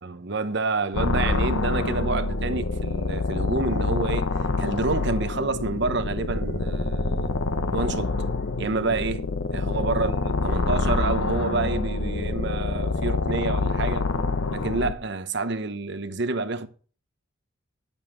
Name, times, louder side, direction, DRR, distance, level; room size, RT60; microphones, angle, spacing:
voice 1, 0.0-4.3 4.6-7.3 7.7-8.2 8.6-14.1 14.5-16.7, right 3 dB, 60° right, 1.0 m, -28 dB
sound 1, 0.9-14.9, left 3 dB, 85° left, 1.0 m, -26 dB
11.5 x 7.2 x 5.8 m
head